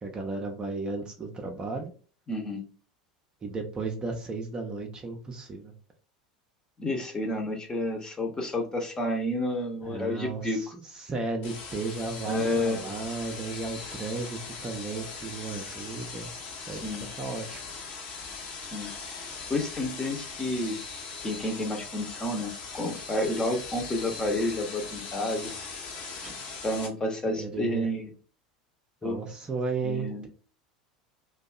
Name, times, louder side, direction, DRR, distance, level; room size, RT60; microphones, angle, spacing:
voice 1, 0.0-1.9 3.4-5.7 9.8-10.7 10.9-16.3 16.7-16.8 17.2-17.6 26.2-26.3 27.3-27.9 29.0-30.3, right 3 dB, 25° right, 2 dB, 0.5 m, -34 dB
voice 2, 2.3-2.6 6.8-10.6 12.3-12.9 16.7-17.1 18.7-20.8 21.2-25.5 26.6-28.1 29.0-29.2 29.8-30.3, left 1 dB, 20° left, 2 dB, 0.7 m, -30 dB
sound 1, 11.4-26.9, left 4 dB, 55° left, 0.7 m, -40 dB
2.6 x 2.2 x 2.3 m, 0.39 s
figure-of-eight pair, 75°, 4 cm